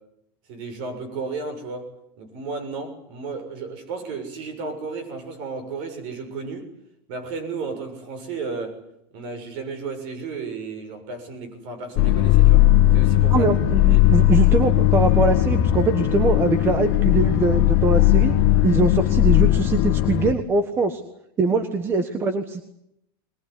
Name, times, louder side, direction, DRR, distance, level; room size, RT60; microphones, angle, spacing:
voice 1, 0.5-1.9 2.2-6.7 7.1-8.8 9.1-12.7 12.9-13.5 13.9-14.1, right 4 dB, 45° right, 7 dB, 6.9 m, -33 dB
sound 1, 12.0-20.3, left 14 dB, 45° left, 1.8 m, -18 dB
voice 2, 13.3-18.3 18.6-21.0 21.4-22.6, right 4 dB, 20° right, 9 dB, 1.3 m, -22 dB
22.5 x 20.5 x 10.0 m, 0.78 s
supercardioid pair, 170°, 12 cm